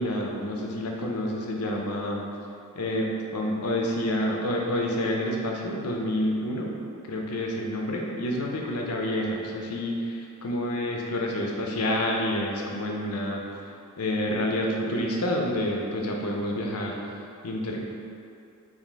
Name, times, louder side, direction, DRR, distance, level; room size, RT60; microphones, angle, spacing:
voice 1, 0.0-2.2 2.7-6.7 7.0-13.4 14.0-17.0 17.4-17.8, left 1 dB, 85° left, 0 dB, 0.5 m, -28 dB
3.4 x 2.6 x 3.9 m, 2.6 s
head